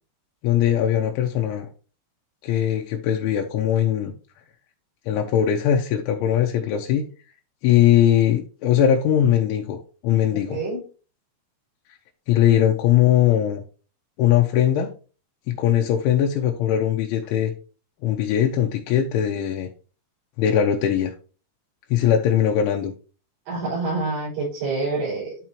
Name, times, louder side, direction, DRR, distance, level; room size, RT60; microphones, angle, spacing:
voice 1, 0.4-1.7 2.4-4.1 5.1-7.1 7.6-9.8 10.0-10.6 12.3-13.6 14.2-14.9 15.5-17.5 18.0-19.7 20.4-21.1 21.9-22.9, left 10 dB, 80° left, 2 dB, 3.1 m, -20 dB
voice 2, 10.5-10.8 23.5-25.4, right 3 dB, 60° right, -9 dB, 7.0 m, -27 dB
12.5 x 4.7 x 3.0 m, 0.36 s
omnidirectional pair, 5.6 m